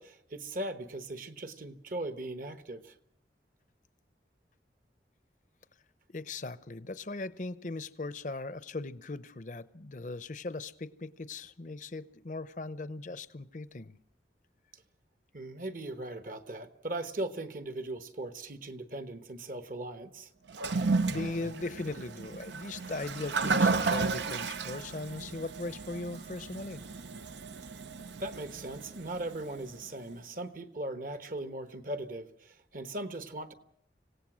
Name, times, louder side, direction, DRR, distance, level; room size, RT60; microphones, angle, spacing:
voice 1, 0.0-3.0 14.7-14.8 15.3-20.3 28.2-33.5, right 1 dB, 50° right, 1.2 m, -39 dB
voice 2, 6.1-14.0 20.6-26.8, left 3 dB, 45° left, 0.7 m, -39 dB
Toilet flush, 20.5-29.8, right 4 dB, 80° right, 0.8 m, -33 dB
26.0 x 17.0 x 6.2 m
head